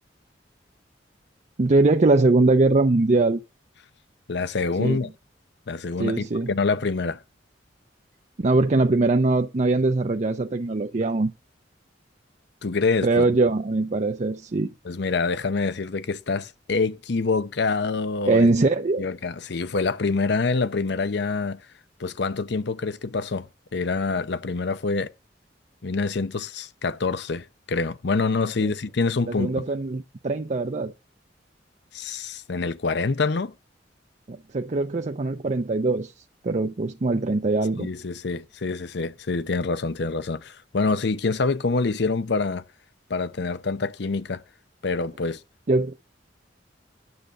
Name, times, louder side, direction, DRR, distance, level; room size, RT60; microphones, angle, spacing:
voice 1, 1.6-3.4 4.8-5.0 6.0-6.5 8.4-11.3 13.0-14.7 18.2-19.0 28.6-28.7 29.3-30.9 34.3-36.1 36.4-37.9 45.7-46.0, right 3 dB, 40° right, 0.6 m, -22 dB
voice 2, 4.3-5.1 5.7-7.2 12.6-13.3 14.8-18.5 19.0-21.6 22.0-25.1 25.8-29.6 31.9-33.5 37.8-42.6 43.1-44.4 44.8-45.4, left 4 dB, 65° left, 0.7 m, -26 dB
9.8 x 6.8 x 6.4 m
head